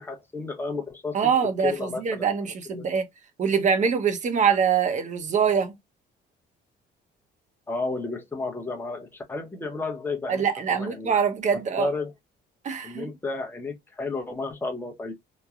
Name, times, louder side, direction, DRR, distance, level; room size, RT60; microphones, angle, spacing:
voice 1, 0.0-1.3 1.6-2.3 2.7-2.8 7.7-10.4 10.7-11.2 11.5-12.1 12.8-15.1, left 3 dB, 10° left, 0.8 m, -32 dB
voice 2, 1.1-3.1 3.4-5.7 10.3-11.9 12.6-13.1, right 6 dB, 40° right, 0.7 m, -24 dB
3.1 x 2.2 x 2.4 m
cardioid pair, 120°, 19 cm